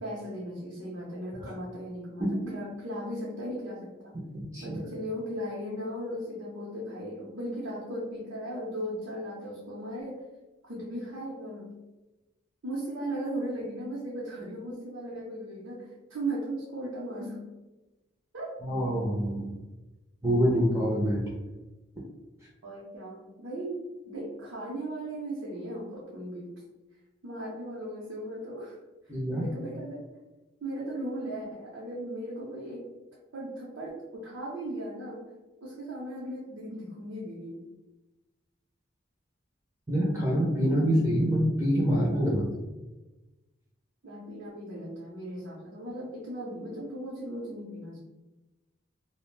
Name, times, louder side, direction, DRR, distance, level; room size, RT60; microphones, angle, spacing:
voice 1, 0.0-4.1 4.6-10.3 10.6-11.7 12.6-17.4 18.3-18.5 22.6-26.6 27.2-28.8 29.0-30.0 30.6-33.0 33.3-35.3 35.6-37.7 40.7-41.0 44.0-48.0, right 1 dB, 85° right, -6 dB, 0.6 m, -37 dB
voice 2, 4.3-4.8 18.6-19.6 20.2-21.3 29.1-29.5 39.9-42.5, equal, 15° right, -5 dB, 0.4 m, -26 dB
2.4 x 2.0 x 3.1 m, 1.1 s
head